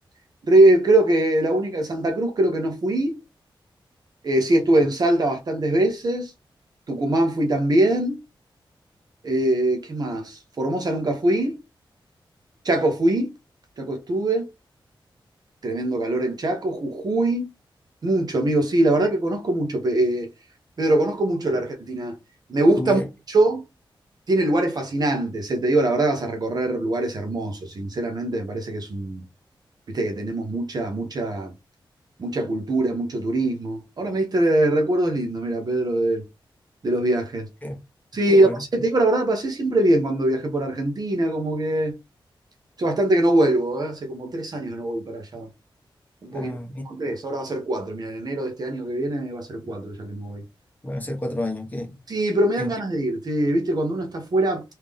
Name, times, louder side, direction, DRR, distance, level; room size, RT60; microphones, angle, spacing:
voice 1, 0.5-3.2 4.2-6.3 6.9-8.2 9.2-11.6 12.6-13.3 13.8-14.4 15.6-17.5 18.0-20.3 20.8-22.1 22.5-23.0 23.3-23.6 24.3-29.2 29.9-31.5 32.2-36.2 36.8-37.5 38.1-42.0 42.8-45.5 46.2-46.6 46.8-50.4 52.1-54.6, right 1 dB, 50° right, 0.8 m, -22 dB
voice 2, 22.8-23.1 37.6-37.8 38.3-38.6 46.3-46.8 50.8-52.0 52.6-52.7, left 1 dB, 20° left, 1.2 m, -30 dB
3.7 x 2.7 x 3.3 m
wide cardioid pair, 125°, 9 cm